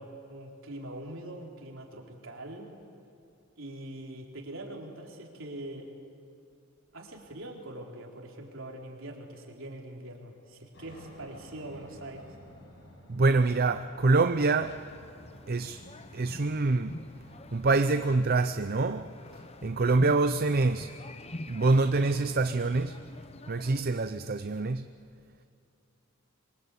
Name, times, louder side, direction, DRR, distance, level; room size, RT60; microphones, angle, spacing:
voice 1, 0.0-2.7 3.6-5.9 6.9-12.3, right 1 dB, 65° right, 4.0 m, -43 dB
Aircraft, 10.7-17.6, equal, 60° left, 7.7 m, -53 dB
voice 2, 13.1-14.8 15.5-15.8 16.1-17.0 17.5-19.1 19.6-20.9 21.5-23.0 23.5-24.8, right 3 dB, 45° right, 0.6 m, -25 dB
sound 1, 14.6-23.8, left 1 dB, 30° left, 0.9 m, -47 dB
26.0 x 23.0 x 8.4 m
head